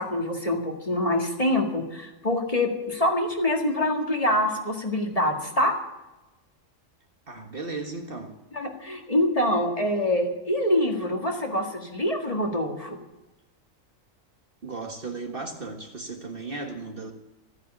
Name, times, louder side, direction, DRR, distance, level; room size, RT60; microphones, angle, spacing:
voice 1, 0.0-5.7 8.5-13.0, left 1 dB, 25° left, 1.9 m, -25 dB
voice 2, 7.3-8.4 14.6-17.1, right 3 dB, 45° right, 1.6 m, -35 dB
14.0 x 9.9 x 8.8 m
omnidirectional pair, 1.4 m